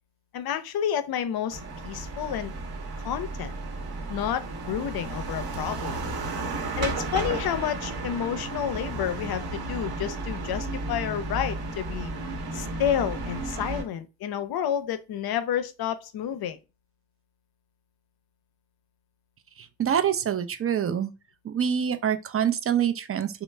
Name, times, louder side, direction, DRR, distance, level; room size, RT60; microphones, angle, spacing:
voice 1, 0.3-2.5 3.0-3.5 4.1-6.0 6.8-12.1 12.5-16.6, left 9 dB, 60° left, 0.5 m, -30 dB
sound 1, 1.5-13.8, right 2 dB, 60° right, 0.9 m, -33 dB
voice 2, 19.6-21.1 21.4-23.4, right 8 dB, 35° right, 0.4 m, -26 dB
3.0 x 2.0 x 3.2 m
supercardioid pair, 60°, 42 cm